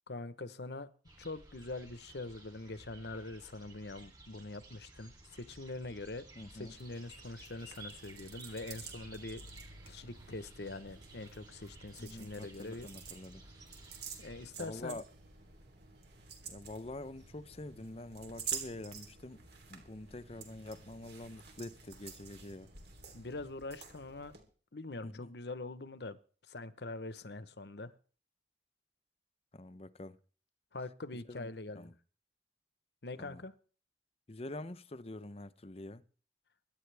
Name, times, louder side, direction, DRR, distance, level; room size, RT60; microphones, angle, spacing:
voice 1, 0.1-0.9 1.2-6.3 6.5-9.4 9.9-12.9 14.2-15.0 23.1-24.3 24.7-26.2 26.5-27.9 30.7-31.9 33.0-33.5, left 2 dB, 70° left, 1.0 m, -43 dB
sound 1, 1.0-14.5, right 2 dB, 25° right, 3.2 m, -55 dB
voice 2, 6.4-6.7 12.0-13.5 14.6-15.0 16.4-19.4 19.7-22.7 25.0-25.3 29.5-30.2 31.3-31.5 31.7-31.9 33.2-33.4 34.3-36.0, left 2 dB, 35° left, 0.8 m, -46 dB
sound 2, 6.8-24.4, right 7 dB, 65° right, 3.5 m, -49 dB
sound 3, 8.1-23.5, right 1 dB, 85° right, 4.0 m, -60 dB
24.5 x 10.5 x 3.5 m
head